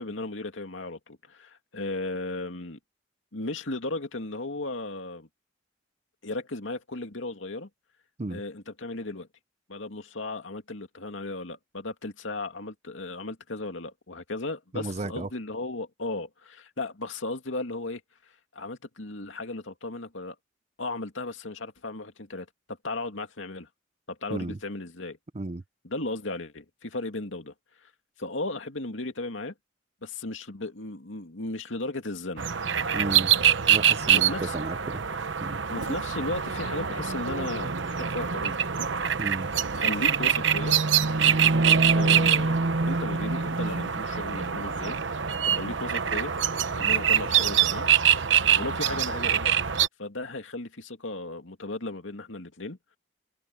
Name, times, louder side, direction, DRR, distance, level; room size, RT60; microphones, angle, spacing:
voice 1, 0.0-2.8 3.3-5.3 6.2-7.7 8.3-9.3 9.7-20.4 20.8-22.5 22.8-23.7 24.1-25.2 25.8-27.5 27.8-27.9 28.2-29.5 30.0-32.5 34.1-34.6 35.7-38.7 39.8-40.8 41.9-46.3 46.7-47.9 48.6-49.5 50.0-52.8, left 2 dB, 85° left, 2.4 m, -35 dB
voice 2, 14.7-15.3 24.3-24.6 25.3-25.6 32.9-33.3 33.7-35.0 35.4-35.6 39.2-39.5, right 2 dB, 35° right, 0.6 m, -33 dB
sound 1, 32.4-49.9, right 8 dB, 75° right, 1.0 m, -24 dB
head